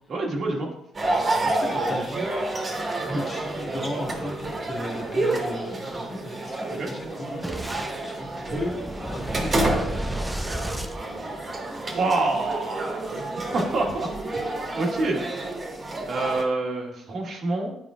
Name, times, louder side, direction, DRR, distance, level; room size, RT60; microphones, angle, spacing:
voice 1, 0.1-0.7 3.0-3.2 6.8-6.9 11.9-13.1 13.5-14.1 14.7-15.2 16.1-17.8, right 2 dB, 60° right, 0 dB, 1.5 m, -26 dB
sound 1, 0.9-16.4, right 2 dB, 35° right, 1.6 m, -29 dB
voice 2, 1.4-2.2 3.1-7.5 8.0-8.7 9.0-10.2, left 1 dB, 40° left, 0 dB, 1.8 m, -35 dB
Boom, 7.4-11.8, right 1 dB, 5° right, 0.6 m, -33 dB
9.6 x 5.0 x 2.4 m, 0.78 s
cardioid pair, 90°, 0 cm